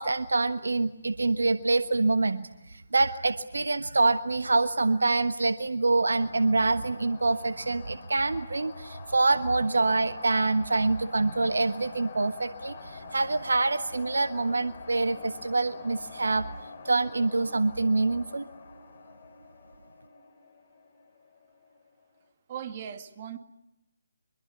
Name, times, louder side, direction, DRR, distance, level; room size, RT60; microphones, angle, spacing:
voice 1, 0.0-16.5 16.8-18.5, right 3 dB, 70° right, 12 dB, 1.2 m, -26 dB
sound 1, 6.1-21.9, left 4 dB, 40° left, 4.3 m, -46 dB
voice 2, 22.5-23.4, right 9 dB, 35° right, 8 dB, 2.2 m, -38 dB
24.5 x 23.0 x 9.5 m, 0.89 s
figure-of-eight pair, 145°, 0 cm